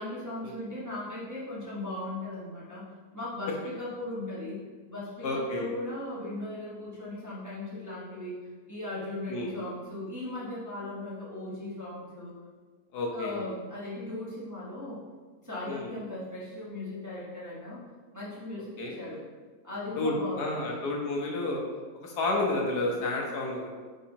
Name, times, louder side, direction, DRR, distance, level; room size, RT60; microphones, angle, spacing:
voice 1, 0.0-4.6 4.9-12.4 13.1-15.0 15.4-17.8 18.1-19.2 19.6-20.8, left 2 dB, 10° right, -7 dB, 1.0 m, -38 dB
voice 2, 5.2-5.7 9.3-9.5 12.9-13.4 15.7-15.9 18.8-18.9 20.0-21.6 22.0-23.8, left 2 dB, 70° left, -1 dB, 1.6 m, -30 dB
8.3 x 4.0 x 2.9 m, 1.4 s
omnidirectional pair, 1.8 m